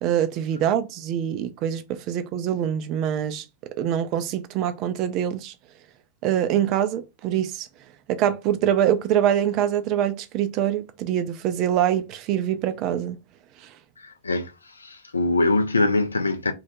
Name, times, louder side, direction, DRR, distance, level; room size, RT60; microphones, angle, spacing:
voice 1, 0.0-3.5 3.8-5.5 6.2-7.7 8.1-13.2, right 10 dB, 40° right, 0.3 m, -24 dB
voice 2, 14.0-16.5, left 2 dB, 75° left, 0.4 m, -23 dB
2.2 x 2.0 x 2.8 m
figure-of-eight pair, 90°, 0 cm